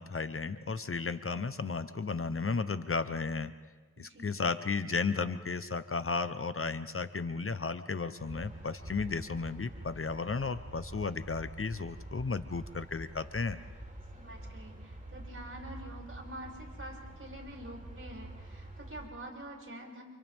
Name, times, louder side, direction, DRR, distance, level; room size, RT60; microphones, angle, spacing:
voice 1, 0.0-3.5 4.0-13.6, left 4 dB, 45° left, 11 dB, 1.0 m, -34 dB
voice 2, 3.9-4.3 14.1-20.0, right 1 dB, 45° right, -1 dB, 6.9 m, -46 dB
sound 1, 8.2-19.1, right 1 dB, 25° right, 4.1 m, -47 dB
29.5 x 28.0 x 3.7 m, 1.3 s
cardioid pair, 45°, 30 cm